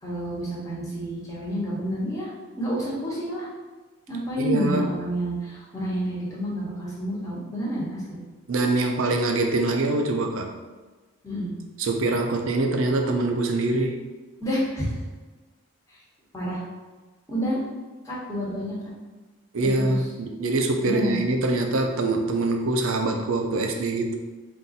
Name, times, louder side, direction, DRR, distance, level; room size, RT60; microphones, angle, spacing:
voice 1, 0.0-3.5 4.1-8.2 11.2-11.5 14.4-15.0 15.9-16.0 16.3-16.6 17.3-17.6 18.0-18.8 19.6-20.0 20.8-21.2, equal, 15° left, -6 dB, 1.1 m, -29 dB
voice 2, 4.4-4.9 8.5-10.5 11.8-14.0 19.5-24.2, right 2 dB, 75° right, 3 dB, 0.5 m, -24 dB
3.9 x 2.5 x 4.1 m, 1.3 s
head